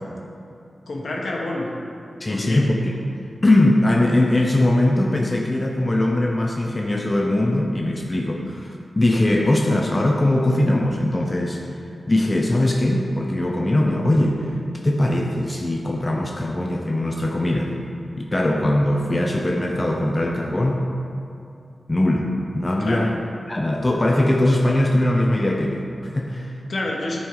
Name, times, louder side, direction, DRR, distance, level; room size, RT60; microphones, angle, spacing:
voice 1, 0.9-1.7 2.3-2.6 22.8-23.1 26.7-27.3, left 2 dB, 65° left, -2 dB, 1.2 m, -28 dB
voice 2, 2.2-2.9 3.4-11.6 12.1-14.5 14.8-17.8 18.2-20.8 21.9-23.1 23.5-26.5, left 1 dB, 25° left, 0 dB, 0.6 m, -20 dB
10.5 x 5.5 x 4.8 m, 2.5 s
wide cardioid pair, 105°, 0 cm